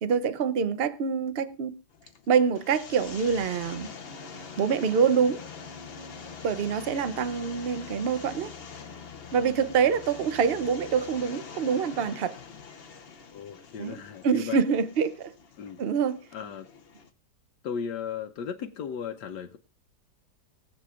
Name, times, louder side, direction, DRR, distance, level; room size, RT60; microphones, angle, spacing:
voice 1, 0.0-1.7 2.3-3.9 4.6-5.4 6.4-8.5 9.3-12.4 13.8-13.9 14.2-15.3 15.8-16.2, right 6 dB, 50° right, 0.8 m, -25 dB
sound 1, 1.9-17.1, left 5 dB, 45° left, 1.0 m, -44 dB
voice 2, 13.3-14.6 15.6-15.8 16.3-16.7 17.6-19.6, left 7 dB, 85° left, 1.4 m, -36 dB
22.0 x 7.6 x 2.5 m
omnidirectional pair, 1.8 m